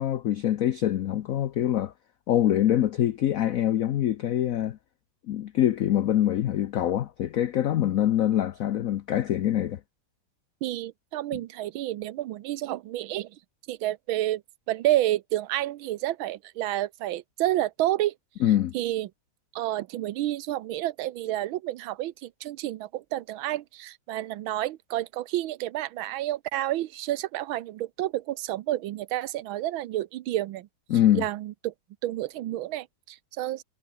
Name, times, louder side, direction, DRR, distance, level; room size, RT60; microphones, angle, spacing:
voice 1, 0.0-1.9 2.3-4.8 5.3-9.8 18.4-18.7 30.9-31.2, left 11 dB, 90° left, 0.7 m, -24 dB
voice 2, 10.6-13.4 13.7-14.4 14.7-18.1 18.7-19.1 19.5-30.7 31.1-31.7 32.0-33.6, right 14 dB, 80° right, 1.5 m, -30 dB
omnidirectional pair, 2.3 m